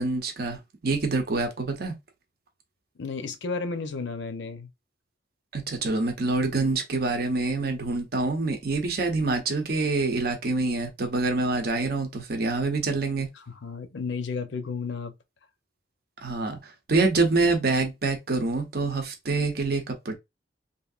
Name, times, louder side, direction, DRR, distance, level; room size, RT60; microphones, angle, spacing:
voice 1, 0.0-1.9 5.5-13.3 16.2-20.1, right 3 dB, 55° right, 0.7 m, -26 dB
voice 2, 3.0-4.7 13.4-15.1, left 4 dB, 75° left, 0.6 m, -33 dB
3.1 x 2.7 x 2.4 m
head